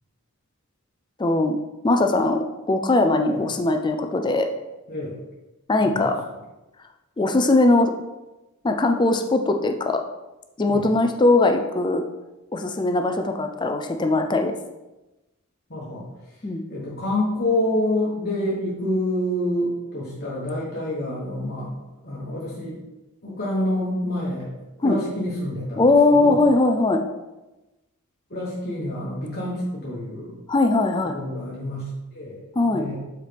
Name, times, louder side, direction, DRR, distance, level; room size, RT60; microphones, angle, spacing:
voice 1, 1.2-1.6 1.8-4.5 5.7-6.2 7.2-7.9 8.6-10.0 10.6-12.0 12.5-14.5 16.4-16.6 24.8-25.0 25.8-27.0 30.5-31.2 32.6-32.8, left 2 dB, 20° left, 5 dB, 0.4 m, -20 dB
voice 2, 4.9-5.2 5.8-6.1 10.7-10.9 15.7-16.4 16.7-21.7 22.0-22.8 23.2-24.5 24.8-26.4 28.3-30.4 31.0-33.0, left 1 dB, 45° left, -6 dB, 1.3 m, -28 dB
7.3 x 4.5 x 3.4 m, 1.0 s
head